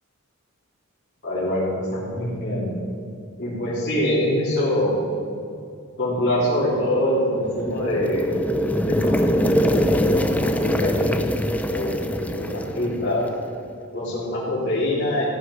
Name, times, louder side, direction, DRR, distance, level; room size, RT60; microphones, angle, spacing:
voice 1, 1.2-2.7 3.4-5.0 6.0-8.4 8.8-11.1 11.7-13.3 13.9-15.2, left 1 dB, 50° left, -10 dB, 3.5 m, -24 dB
sound 1, 7.4-13.5, equal, 5° left, 0.6 m, -23 dB
15.0 x 9.5 x 5.6 m, 2.5 s
head